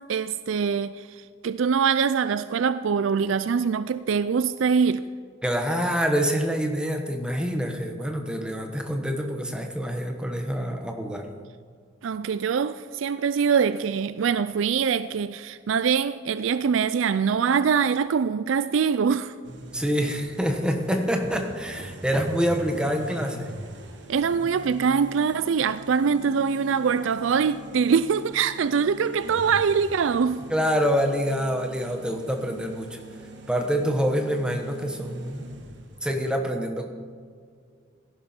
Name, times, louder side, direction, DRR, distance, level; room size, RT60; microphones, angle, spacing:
voice 1, 0.1-5.1 12.0-19.3 24.1-30.5, right 6 dB, 80° right, 0.4 m, -23 dB
voice 2, 5.4-11.3 19.7-23.5 30.5-33.0 33.5-35.4 36.0-36.9, equal, 5° right, 1.2 m, -26 dB
sound 1, 19.4-36.3, right 1 dB, 65° right, 1.5 m, -42 dB
16.5 x 11.0 x 4.4 m
head